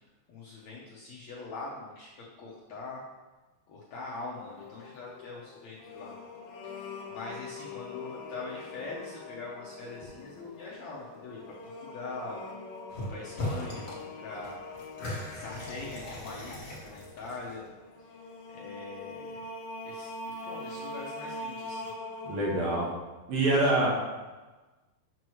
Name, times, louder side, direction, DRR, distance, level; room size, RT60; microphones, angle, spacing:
voice 1, 0.3-2.1 2.4-3.0 3.7-6.1 6.6-12.4 13.1-14.6 15.3-17.7 18.5-19.4 19.8-20.1 20.4-21.9 23.8-23.9, left 3 dB, 70° left, -5 dB, 1.8 m, -42 dB
sound 1, 4.3-22.9, left 2 dB, 85° left, 2.6 m, -43 dB
sound 2, 12.9-13.1 13.4-14.0 14.3-17.7, left 1 dB, 35° left, 1.2 m, -38 dB
voice 2, 22.2-22.9 23.3-23.9, right 2 dB, 75° right, -3 dB, 3.3 m, -25 dB
7.7 x 6.7 x 3.1 m, 1.2 s
omnidirectional pair, 4.2 m